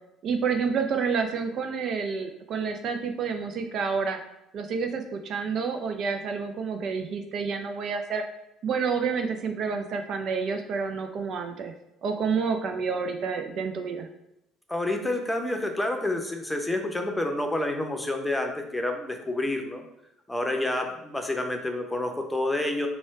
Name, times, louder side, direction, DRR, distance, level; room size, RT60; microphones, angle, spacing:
voice 1, 0.2-4.2 4.5-8.2 8.6-11.7 12.0-14.1, right 5 dB, 50° right, 6 dB, 0.4 m, -29 dB
voice 2, 14.7-19.8 20.3-22.9, left 1 dB, 10° left, 3 dB, 0.8 m, -28 dB
4.1 x 2.3 x 4.6 m, 0.87 s
figure-of-eight pair, 55°, 0 cm